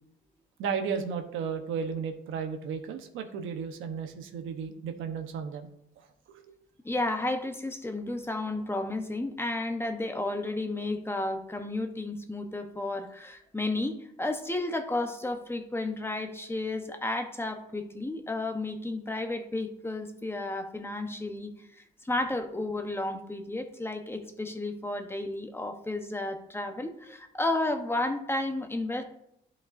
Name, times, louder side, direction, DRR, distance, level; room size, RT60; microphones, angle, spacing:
voice 1, 0.6-5.7 6.3-6.6, right 6 dB, 90° right, 6 dB, 1.0 m, -34 dB
voice 2, 6.8-29.0, left 2 dB, 10° left, 5 dB, 0.9 m, -32 dB
11.0 x 5.3 x 2.6 m, 0.78 s
cardioid pair, 90°, 20 cm